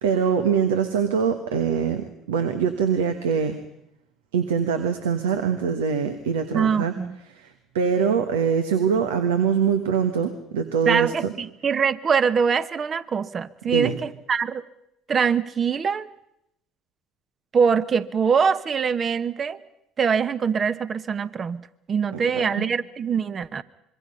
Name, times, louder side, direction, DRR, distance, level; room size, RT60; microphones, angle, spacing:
voice 1, 0.0-3.6 4.3-6.9 7.3-11.3 13.6-13.9 22.1-22.7, right 7 dB, 85° right, 8 dB, 1.4 m, -23 dB
voice 2, 6.5-7.2 10.9-14.6 15.1-16.1 17.5-19.6 20.0-23.6, right 6 dB, 40° right, 15 dB, 1.1 m, -23 dB
25.5 x 22.5 x 5.5 m, 0.79 s
hypercardioid pair, 70°, 0 cm